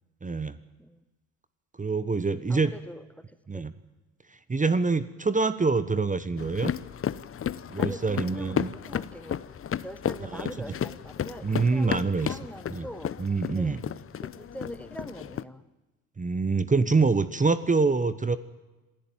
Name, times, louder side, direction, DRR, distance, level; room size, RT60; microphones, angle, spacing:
voice 1, 0.2-0.6 1.8-2.7 3.5-3.7 4.3-6.7 7.7-8.7 10.3-10.5 11.4-12.4 12.7-12.9 13.2-13.8 16.2-18.4, right 4 dB, 15° right, 15 dB, 1.2 m, -25 dB
voice 2, 2.5-3.7 7.8-13.2 13.5-13.8 14.2-15.6, equal, 5° left, 14 dB, 1.3 m, -43 dB
sound 1, 6.4-15.4, left 9 dB, 30° left, 0.8 m, -33 dB
26.5 x 16.0 x 9.2 m, 1.1 s
hypercardioid pair, 60°, 44 cm